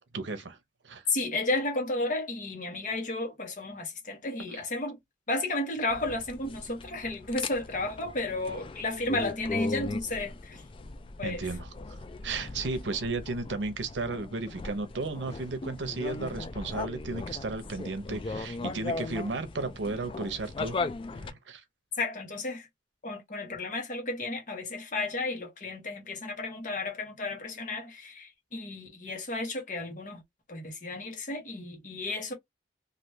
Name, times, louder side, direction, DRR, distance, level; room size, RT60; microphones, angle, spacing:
voice 1, 0.1-0.6 0.8-1.0 4.5-4.6 11.2-12.0 12.2-20.8 21.1-21.6, right 3 dB, 80° right, 0.7 m, -34 dB
voice 2, 1.1-5.0 5.3-10.6 11.2-11.5 22.0-22.7 23.0-30.2 30.5-32.3, left 2 dB, 45° left, 1.1 m, -33 dB
sound 1, 5.9-21.3, left 3 dB, 30° left, 0.3 m, -38 dB
3.3 x 2.5 x 2.7 m
head